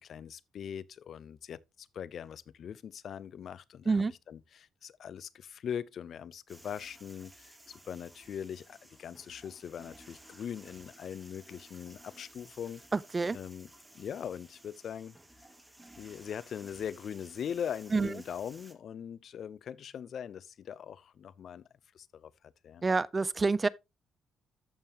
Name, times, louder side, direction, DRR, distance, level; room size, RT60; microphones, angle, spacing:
voice 1, 0.0-12.8 13.3-13.7 13.9-15.2 16.0-21.6 21.9-22.3 22.6-22.8, left 8 dB, 60° left, 0.6 m, -41 dB
sound 1, 6.5-18.7, right 1 dB, 10° right, 1.8 m, -56 dB
voice 2, 12.9-13.4 17.9-18.2 22.8-23.7, right 4 dB, 25° right, 0.5 m, -28 dB
14.0 x 5.5 x 2.9 m
cardioid pair, 90°, 0 cm